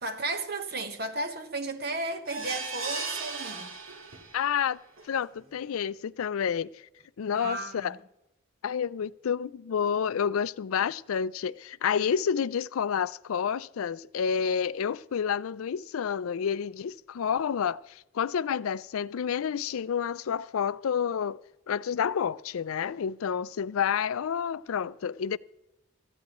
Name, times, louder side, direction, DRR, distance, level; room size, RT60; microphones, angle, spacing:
voice 1, 0.0-3.7 7.3-8.0, right 2 dB, 50° right, 1.2 m, -34 dB
sound 1, 2.3-4.5 5.0-5.1 5.4-5.5, right 4 dB, 85° right, 2.1 m, -36 dB
voice 2, 4.3-4.8 5.0-6.7 7.2-8.0 8.6-21.4 21.7-25.4, left 7 dB, 90° left, 0.4 m, -29 dB
18.0 x 14.5 x 3.0 m
head